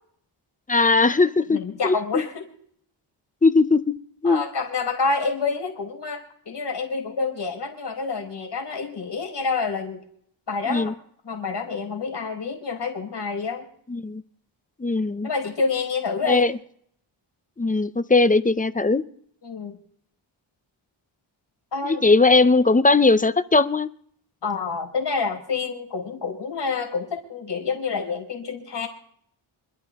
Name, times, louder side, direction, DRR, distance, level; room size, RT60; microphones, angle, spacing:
voice 1, 0.7-2.0 3.4-4.0 4.2-4.4 10.7-10.9 13.9-14.2 14.8-15.3 16.2-16.5 17.6-19.0 21.8-23.9, left 3 dB, 15° left, 13 dB, 0.6 m, -19 dB
voice 2, 1.5-2.5 4.2-10.0 10.5-10.9 11.2-13.7 15.2-16.4 19.4-19.8 21.7-22.0 24.4-28.9, left 4 dB, 55° left, 2 dB, 4.7 m, -28 dB
27.0 x 12.5 x 3.6 m, 0.63 s
wide cardioid pair, 105°, 49 cm